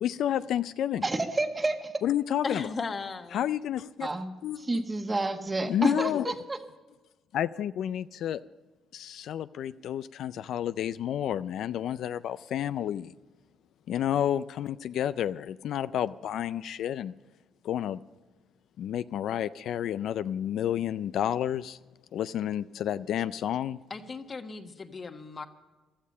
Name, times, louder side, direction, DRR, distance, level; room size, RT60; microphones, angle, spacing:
voice 1, 0.0-1.1 2.0-2.7 3.3-4.1 4.4-4.8 5.7-6.3 7.3-8.4 8.9-13.1 13.9-17.1 17.6-18.0 18.8-21.8 22.1-23.8, left 10 dB, 75° left, 13 dB, 0.4 m, -30 dB
voice 2, 1.0-1.9 4.0-4.3 4.7-6.6, right 2 dB, 25° right, 5 dB, 1.5 m, -29 dB
voice 3, 2.4-3.4 23.9-25.5, left 4 dB, 40° left, 6 dB, 1.3 m, -36 dB
16.0 x 13.0 x 5.5 m, 1.2 s
cardioid pair, 90°, 0 cm